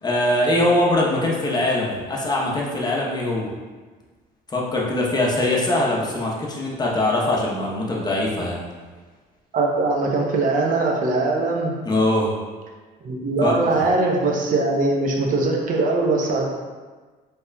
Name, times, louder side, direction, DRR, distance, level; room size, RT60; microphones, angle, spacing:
voice 1, 0.0-3.5 4.5-8.6 11.8-12.3 13.4-13.8, left 1 dB, 25° left, -3 dB, 0.8 m, -22 dB
voice 2, 9.5-11.8 13.0-16.4, right 3 dB, 50° right, 0 dB, 0.7 m, -21 dB
4.1 x 3.3 x 2.2 m, 1.4 s
cardioid pair, 110°, 17 cm